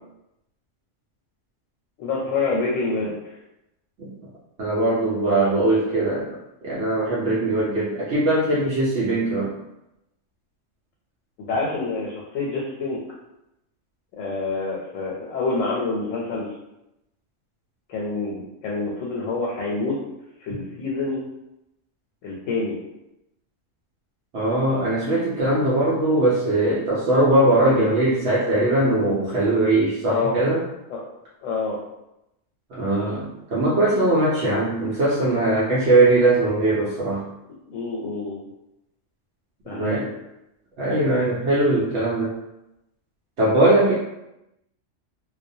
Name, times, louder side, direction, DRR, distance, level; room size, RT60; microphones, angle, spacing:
voice 1, 2.0-3.1 11.5-13.0 14.2-16.5 17.9-20.0 20.4-21.3 22.2-22.8 27.7-27.9 29.0-29.2 30.0-30.4 30.9-31.0 31.4-31.8 37.7-38.5 39.7-40.1, left 3 dB, 85° left, -3 dB, 1.0 m, -27 dB
voice 2, 4.6-6.3 6.6-9.5 24.3-30.6 32.7-37.2 39.7-40.0 40.8-42.3 43.4-43.9, right 2 dB, 65° right, -8 dB, 0.8 m, -20 dB
2.3 x 2.1 x 2.6 m, 0.88 s
omnidirectional pair, 1.3 m